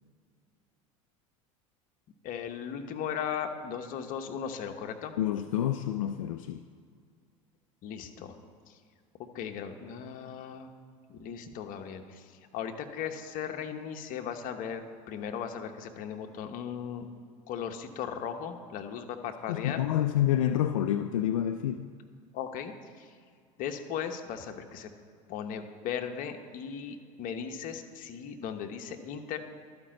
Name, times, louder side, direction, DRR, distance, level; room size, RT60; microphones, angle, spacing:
voice 1, 2.2-5.1 7.8-8.4 8.7-8.8 9.3-10.7 11.1-14.8 15.1-17.1 17.5-19.8 22.3-23.1 23.6-24.9 25.3-29.4, left 8 dB, 55° left, 1.0 m, -37 dB
voice 2, 5.2-6.7 19.5-21.9, left 11 dB, 85° left, 0.4 m, -28 dB
12.0 x 5.2 x 7.6 m
hypercardioid pair, 80°, 17 cm